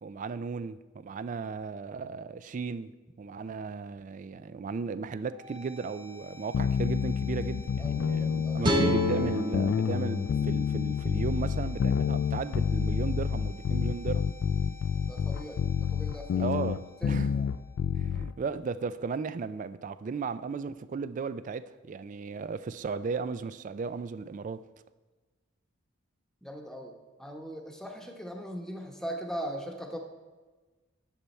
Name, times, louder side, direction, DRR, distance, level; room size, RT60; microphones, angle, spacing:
voice 1, 0.0-2.9 3.2-14.3 16.4-17.4 18.0-24.6, right 5 dB, 40° right, 0.3 m, -35 dB
sound 1, 5.2-19.2, left 5 dB, 70° right, 2.9 m, -52 dB
sound 2, 6.5-18.3, left 7 dB, 70° left, 0.3 m, -29 dB
voice 2, 7.8-8.7 15.1-16.5 17.0-17.5 26.4-30.0, equal, 5° left, 1.0 m, -40 dB
sound 3, 8.6-11.8, left 1 dB, 25° right, 1.1 m, -31 dB
10.0 x 6.9 x 4.3 m
head